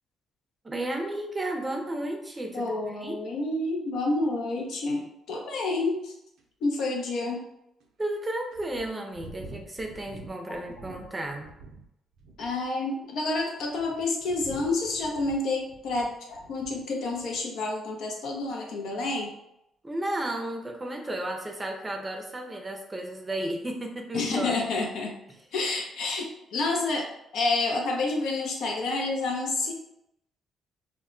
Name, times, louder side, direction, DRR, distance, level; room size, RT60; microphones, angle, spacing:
voice 1, 0.6-3.2 8.0-11.5 19.8-24.6 25.3-25.4, right 1 dB, 20° right, 3 dB, 0.5 m, -33 dB
voice 2, 2.5-6.1 6.6-7.4 12.4-19.3 24.1-25.2 25.5-27.1 27.3-29.7, left 3 dB, 75° left, 1 dB, 0.6 m, -29 dB
sound 1, 6.4-6.5 7.1-7.2 7.8-7.9 8.5-11.9 12.2-12.7 13.4-16.8 17.1-17.5, right 3 dB, 85° right, 0.4 m, -47 dB
2.1 x 2.1 x 3.7 m, 0.81 s
cardioid pair, 90°, 0 cm